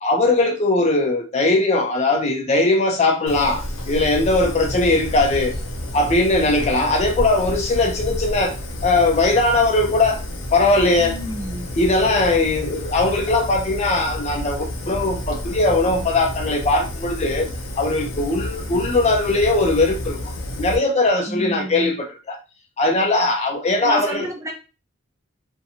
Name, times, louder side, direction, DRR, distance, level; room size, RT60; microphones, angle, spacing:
voice 1, 0.0-5.5 5.9-8.5 8.8-10.2 10.5-11.2 11.8-17.5 17.8-20.2 20.6-22.4 22.8-24.3, left 2 dB, 35° left, 0.4 m, -19 dB
Fire, 3.3-20.8, left 1 dB, 85° left, 0.6 m, -30 dB
voice 2, 11.0-11.7 21.3-21.9 23.8-24.5, right 1 dB, 15° right, 0.5 m, -30 dB
2.6 x 2.2 x 2.8 m
head